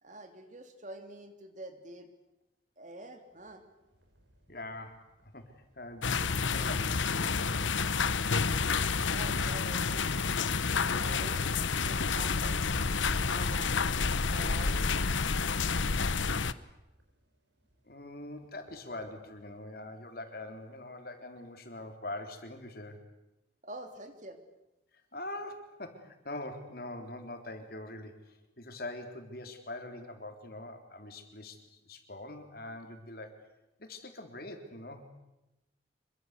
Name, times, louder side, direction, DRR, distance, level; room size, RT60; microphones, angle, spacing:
voice 1, 0.0-2.1 2.8-3.6 9.1-10.1 10.9-14.9 23.6-24.4, right 1 dB, 40° right, 7 dB, 3.1 m, -47 dB
sound 1, 3.3-19.6, right 1 dB, 75° right, 7.0 m, -61 dB
voice 2, 4.5-5.1 5.3-7.8 17.8-23.0 25.1-33.3 33.8-35.1, left 1 dB, 50° left, 5 dB, 3.7 m, -43 dB
sound 2, 6.0-16.5, left 5 dB, 85° left, 1.0 m, -29 dB
26.5 x 24.0 x 8.3 m, 0.93 s
head